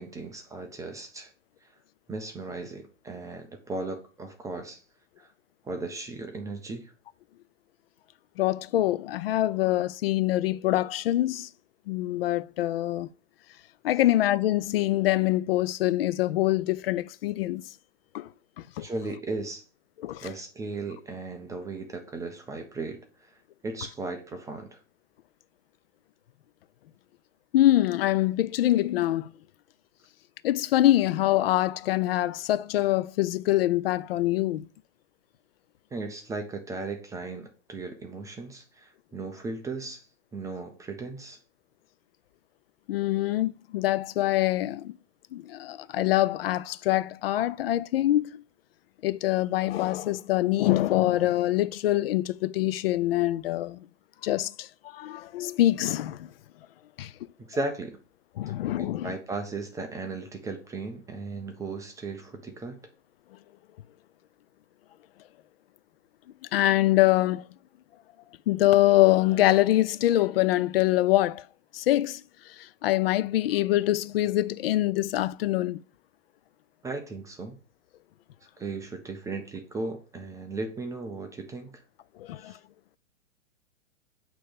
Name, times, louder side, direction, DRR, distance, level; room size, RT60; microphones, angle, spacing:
voice 1, 0.0-1.3 1.6-1.8 2.1-4.8 5.2-5.3 5.6-6.9 18.8-19.6 20.2-23.4 23.6-24.8 35.9-40.1 40.3-41.4 57.4-58.0 58.8-62.8 76.8-77.6 78.6-81.8 82.4-82.6, right 3 dB, 10° right, 0.5 m, -36 dB
voice 2, 8.4-11.5 11.9-13.1 13.8-17.6 18.1-18.3 18.8-18.9 20.0-20.3 27.5-29.3 30.4-34.7 42.9-44.9 45.3-48.4 49.0-53.8 54.2-54.7 54.9-56.2 57.0-57.1 58.4-59.1 66.5-67.4 68.5-71.4 71.7-72.2 72.8-75.8 82.3-82.5, left 15 dB, 50° left, 0.4 m, -24 dB
8.4 x 3.0 x 5.2 m
hypercardioid pair, 115°, 38 cm